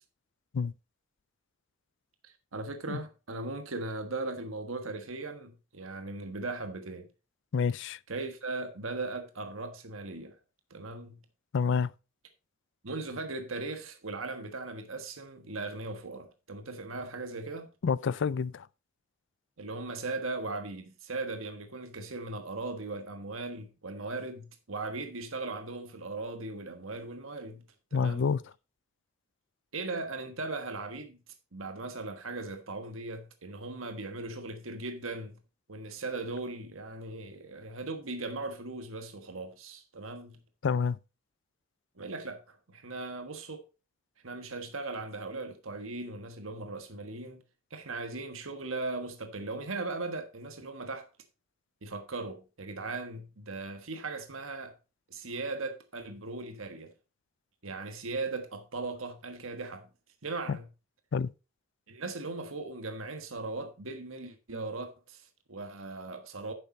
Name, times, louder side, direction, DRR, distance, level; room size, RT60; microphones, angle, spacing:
voice 1, 2.2-7.1 8.1-10.4 10.7-11.2 12.8-17.7 19.6-27.6 27.9-28.4 29.7-31.2 31.5-35.4 35.7-40.4 42.0-43.6 44.2-47.4 47.7-51.1 51.8-54.7 55.1-56.9 57.6-59.9 60.2-60.7 61.9-66.5, right 3 dB, 80° right, 1.4 m, -38 dB
voice 2, 7.5-8.0 11.5-11.9 17.8-18.6 27.9-28.4 40.6-41.0 60.5-60.6 61.1-61.3, left 5 dB, 65° left, 0.4 m, -28 dB
10.0 x 6.9 x 4.0 m
head